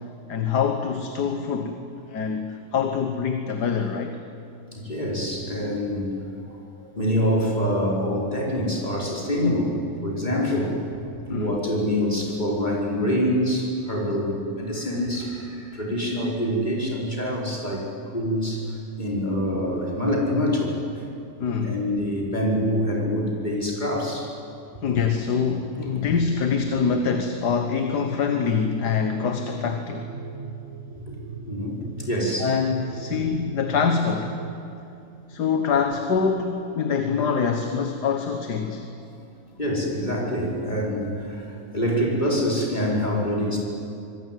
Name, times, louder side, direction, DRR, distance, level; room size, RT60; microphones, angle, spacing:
voice 1, 0.3-1.8 2.1-4.2 11.3-11.5 21.4-21.8 24.8-30.1 32.4-34.4 35.3-38.9, left 6 dB, 85° left, 6 dB, 1.9 m, -25 dB
voice 2, 4.7-6.2 6.5-21.0 21.6-24.3 25.9-26.1 31.1-31.2 31.5-32.6 33.1-33.2 39.6-43.6, equal, 25° left, -3 dB, 5.1 m, -26 dB
sound 1, 27.7-34.5, right 5 dB, 50° right, 1.5 m, -38 dB
26.0 x 21.0 x 9.3 m, 2.7 s
omnidirectional pair, 1.7 m